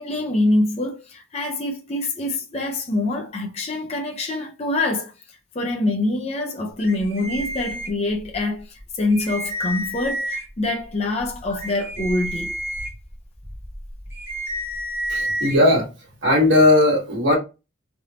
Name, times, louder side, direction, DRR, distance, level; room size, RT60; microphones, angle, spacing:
voice 1, 0.0-5.1 5.5-12.5, left 2 dB, 30° left, 0.5 m, -25 dB
sound 1, 6.8-8.4 8.8-8.9 9.1-10.7 11.2-15.6, equal, 10° right, 0.7 m, -30 dB
voice 2, 15.1-15.9 16.2-17.4, left 1 dB, 60° right, 1.4 m, -17 dB
3.3 x 2.6 x 2.7 m
head